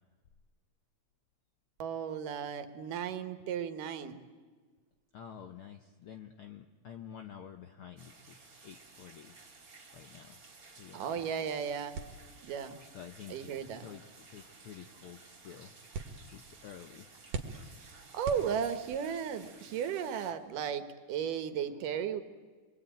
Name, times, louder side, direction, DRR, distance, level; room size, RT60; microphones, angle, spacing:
voice 1, 1.8-4.2 10.9-12.0 12.4-12.8 13.3-13.9 17.8-22.2, right 8 dB, 80° right, 10 dB, 2.9 m, -35 dB
voice 2, 5.1-9.3 9.9-10.4 10.8-11.1 12.9-13.5 13.8-15.7 16.2-17.1, left 8 dB, 70° left, 6 dB, 1.3 m, -49 dB
sound 1, 8.0-20.3, right 3 dB, 25° right, 2.8 m, -56 dB
sound 2, 11.9-19.1, right 4 dB, 55° right, 2.5 m, -46 dB
28.5 x 23.0 x 9.1 m, 1.5 s
omnidirectional pair, 3.7 m